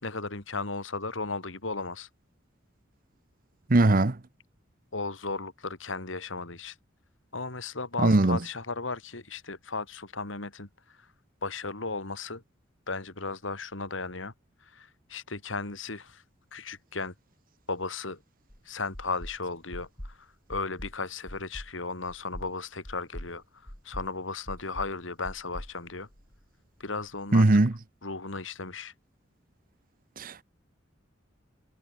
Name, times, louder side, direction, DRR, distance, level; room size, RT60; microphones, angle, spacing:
voice 1, 0.0-2.1 4.9-6.7 7.3-11.0 11.4-12.4 12.9-14.3 14.6-16.2 16.5-17.1 17.7-18.2 18.6-23.4 23.8-26.1 26.8-27.5 28.0-28.9, left 3 dB, 80° left, 3.0 m, -35 dB
voice 2, 3.7-4.2 8.0-8.4 27.3-27.7 30.2-30.4, right 2 dB, 45° right, 0.9 m, -20 dB
sound 1, 18.5-18.6 18.9-19.4 19.7-20.2 20.5-21.0 21.3-21.7 22.1-22.5 22.8-23.3 23.7-24.1 24.5-24.9 25.2-26.4, equal, 25° left, 4.5 m, -42 dB
head